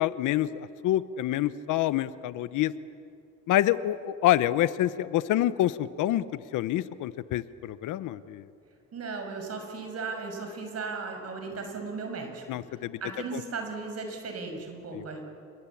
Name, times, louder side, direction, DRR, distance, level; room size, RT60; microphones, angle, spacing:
voice 1, 0.0-2.7 3.5-6.2 6.5-8.4 12.5-13.0 13.3-13.4 14.9-15.0, left 13 dB, 85° left, 15 dB, 0.9 m, -27 dB
voice 2, 8.9-15.2, right 4 dB, 55° right, 4 dB, 6.1 m, -36 dB
28.0 x 22.0 x 8.5 m, 2.4 s
cardioid pair, 90°, 30 cm